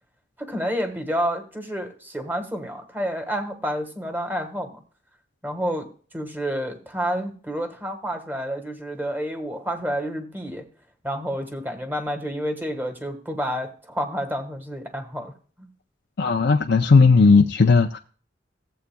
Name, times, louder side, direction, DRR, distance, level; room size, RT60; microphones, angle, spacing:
voice 1, 0.4-4.8 5.4-5.9 6.1-10.6 11.0-15.3 15.6-15.7, equal, 10° right, 5 dB, 1.6 m, -29 dB
voice 2, 16.2-18.0, left 4 dB, 65° left, 4 dB, 0.6 m, -16 dB
15.5 x 8.1 x 2.3 m, 0.40 s
head